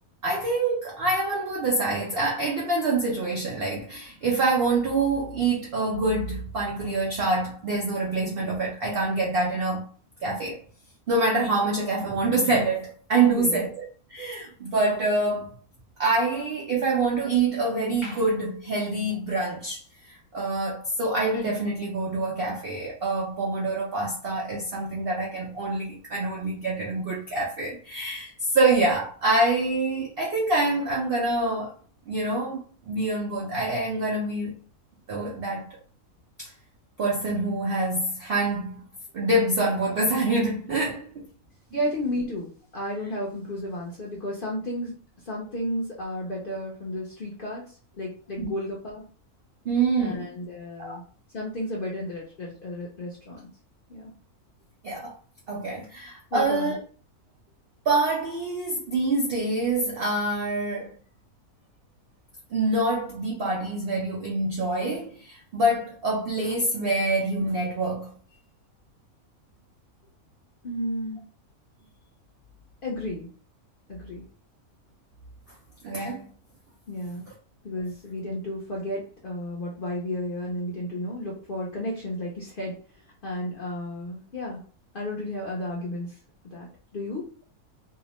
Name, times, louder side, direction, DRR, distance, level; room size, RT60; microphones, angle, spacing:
voice 1, 0.2-9.9 10.2-10.6 11.1-13.8 14.1-15.6 16.0-19.8 20.3-31.7 32.1-34.6 35.1-35.7 36.4-36.5 37.0-38.8 39.1-41.3 48.4-48.5 49.6-50.3 50.8-51.0 54.8-55.1 55.5-56.8 57.9-61.0 62.5-68.1 75.8-76.3, right 2 dB, 70° right, 0.5 m, -26 dB
voice 2, 13.3-13.6 41.7-45.0 45.2-49.0 50.0-51.0 51.3-53.4 53.9-54.1 56.3-56.7 70.6-71.2 72.8-73.3 73.9-74.2 76.9-77.3 77.6-82.8 83.2-84.6 84.9-86.2 86.5-87.3, left 1 dB, 55° left, 0.6 m, -33 dB
2.7 x 2.0 x 2.9 m
omnidirectional pair, 1.6 m